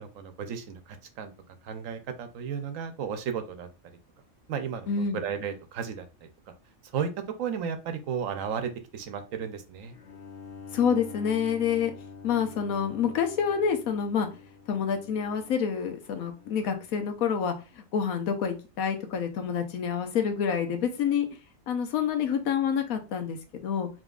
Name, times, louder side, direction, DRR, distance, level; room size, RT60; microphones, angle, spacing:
voice 1, 0.0-1.3 1.6-3.7 4.5-6.3 6.9-10.0, right 7 dB, 75° right, 9 dB, 1.1 m, -34 dB
voice 2, 4.9-5.2 10.7-11.9 12.2-14.3 14.7-21.3 21.7-23.9, left 7 dB, 90° left, 6 dB, 1.2 m, -28 dB
Bowed string instrument, 9.9-16.9, left 5 dB, 60° left, 1.6 m, -46 dB
5.1 x 3.0 x 2.4 m, 0.31 s
omnidirectional pair, 1.4 m